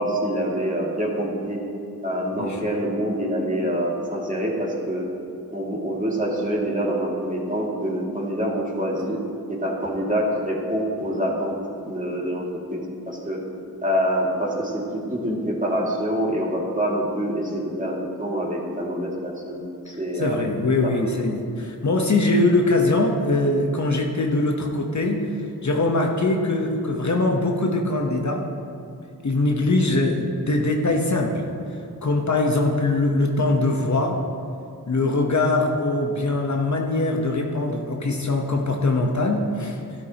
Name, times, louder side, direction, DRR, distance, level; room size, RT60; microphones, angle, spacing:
voice 1, 0.0-1.6 2.0-5.0 5.5-9.2 9.5-11.6 11.8-12.4 12.7-12.8 13.1-13.4 13.8-20.4 20.8-20.9, equal, 20° right, -3 dB, 2.3 m, -26 dB
voice 2, 19.9-25.3 25.6-28.5 29.2-31.5 32.0-34.2 34.9-39.8, left 2 dB, 50° left, 2 dB, 1.0 m, -22 dB
12.5 x 12.0 x 2.9 m, 2.5 s
cardioid pair, 60°, 38 cm